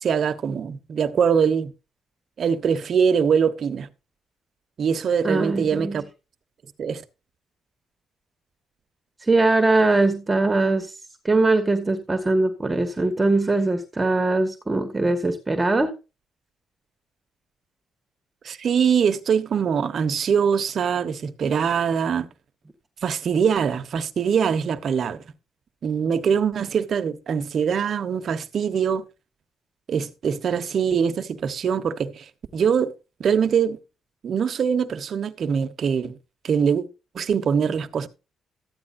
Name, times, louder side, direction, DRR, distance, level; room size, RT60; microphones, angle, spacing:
voice 1, 0.0-1.7 2.4-3.9 4.8-6.1 6.8-7.0 18.4-22.3 23.0-25.2 25.8-29.0 29.9-32.9 33.2-33.8 34.2-36.1 36.4-36.8 37.1-38.1, right 7 dB, 55° right, 1.2 m, -23 dB
voice 2, 5.2-6.0 9.2-10.9 11.2-15.9, right 2 dB, 20° right, 1.5 m, -21 dB
14.0 x 9.9 x 2.6 m
cardioid pair, 90°, 0 cm